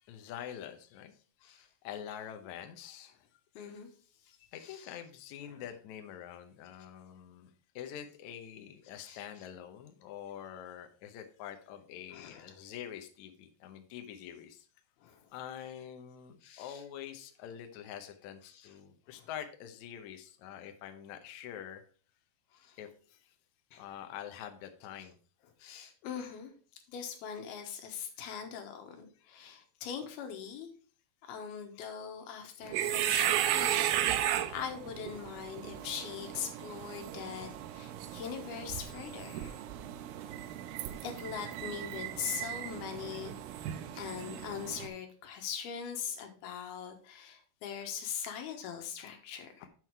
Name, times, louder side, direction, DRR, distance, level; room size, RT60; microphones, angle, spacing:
voice 1, 0.1-1.1 1.6-3.3 4.5-7.5 7.8-14.7 15.3-21.8 22.7-23.2 23.8-25.2 49.6-49.7, left 10 dB, 70° left, 7 dB, 1.8 m, -45 dB
voice 2, 3.6-3.9 4.6-4.9 5.5-5.6 9.0-9.2 12.1-12.5 15.0-15.3 16.4-16.8 18.5-18.7 19.2-19.3 22.5-22.8 23.7-23.8 25.6-26.5 26.9-30.7 31.2-39.6 41.0-43.3 43.9-49.5, left 7 dB, 90° left, 4 dB, 3.2 m, -41 dB
sound 1, 32.6-44.9, right 11 dB, 80° right, 2.3 m, -35 dB
7.6 x 6.3 x 4.6 m, 0.41 s
omnidirectional pair, 4.4 m